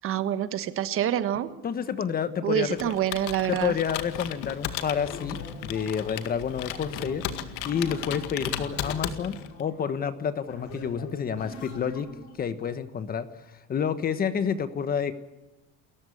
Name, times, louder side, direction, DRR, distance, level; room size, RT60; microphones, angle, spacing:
voice 1, 0.0-1.5 2.4-3.7, right 10 dB, 45° right, 12 dB, 1.4 m, -27 dB
voice 2, 1.6-2.9 3.5-7.3 7.6-12.1 12.3-15.2, left 7 dB, 30° left, 12 dB, 1.3 m, -29 dB
Computer keyboard, 2.7-9.6, left 12 dB, 85° left, 2.0 m, -35 dB
sound 1, 4.8-12.4, left 1 dB, 60° left, 6.1 m, -43 dB
29.0 x 14.5 x 8.5 m, 1.0 s
cardioid pair, 160°, 32 cm